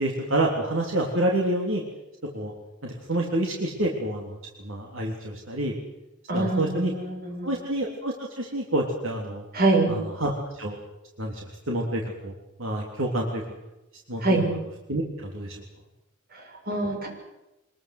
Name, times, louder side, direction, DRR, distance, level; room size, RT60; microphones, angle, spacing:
voice 1, 0.0-1.8 2.3-2.5 2.8-5.7 6.3-6.9 7.4-9.5 9.9-10.8 11.2-12.3 12.6-13.4 14.1-14.4 14.9-15.6, right 1 dB, 70° right, 0 dB, 3.5 m, -28 dB
voice 2, 6.3-7.5 9.5-9.9 14.2-14.5 16.3-17.1, right 2 dB, 50° right, 2 dB, 6.5 m, -25 dB
25.0 x 21.0 x 7.9 m, 0.95 s
head